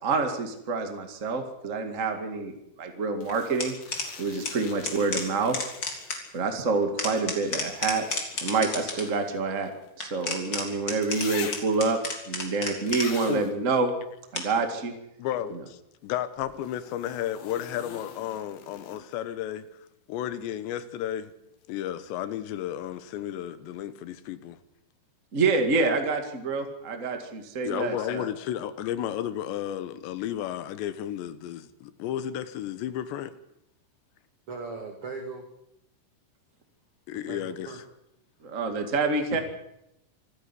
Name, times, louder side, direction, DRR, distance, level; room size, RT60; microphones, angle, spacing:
voice 1, 0.0-3.7 4.2-5.6 6.3-9.7 10.0-12.0 12.3-13.9 14.3-14.9 15.5-15.6 25.3-28.3 38.4-39.4, right 4 dB, 60° right, 0.7 m, -27 dB
sound 1, 3.2-6.4 7.2-10.4 11.0-11.9 12.9-13.5 16.5-19.2 21.1-21.2, left 7 dB, 60° left, 3.4 m, -44 dB
sound 2, 3.3-4.1 4.4-4.5 4.8-6.2 6.7-9.1 10.0-13.3 14.3-14.7 16.4-16.5, left 3 dB, 30° left, 3.0 m, -32 dB
voice 2, 15.2-19.6 20.1-21.3 21.7-24.6 27.6-33.4 37.1-37.9, left 11 dB, 75° left, 3.2 m, -33 dB
voice 3, 34.5-35.5 37.1-37.8, right 4 dB, 40° right, 2.3 m, -38 dB
26.0 x 10.5 x 9.9 m
omnidirectional pair, 5.3 m